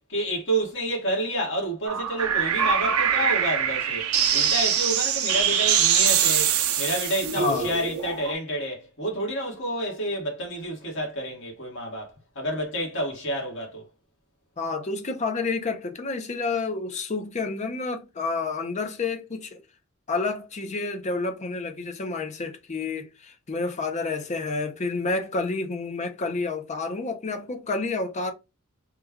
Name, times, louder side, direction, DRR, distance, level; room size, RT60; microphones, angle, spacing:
voice 1, 0.1-4.1 4.3-13.9, right 1 dB, 60° left, 1.3 m, -29 dB
sound 1, 1.9-8.3, right 8 dB, 75° right, 0.5 m, -23 dB
voice 2, 7.4-7.7 14.6-19.6 20.1-28.3, left 3 dB, 35° left, 0.5 m, -29 dB
3.1 x 2.3 x 3.4 m
head